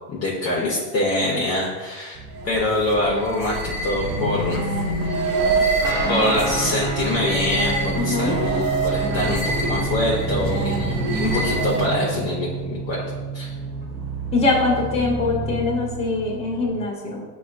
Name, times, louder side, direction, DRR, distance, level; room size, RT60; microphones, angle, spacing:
voice 1, 0.1-2.2 2.4-4.6 6.1-13.0 13.3-13.5, left 1 dB, 30° left, -4 dB, 0.7 m, -24 dB
sound 1, 2.1-16.8, right 2 dB, 30° right, 0.9 m, -33 dB
sound 2, 2.3-12.1, right 2 dB, 75° right, 0.7 m, -26 dB
Guitar, 5.8-13.9, right 3 dB, 10° right, 0.4 m, -29 dB
voice 2, 8.0-8.4 14.3-17.2, left 3 dB, 15° left, -2 dB, 1.0 m, -23 dB
6.8 x 2.4 x 2.5 m, 1.4 s
supercardioid pair, 115°, 49 cm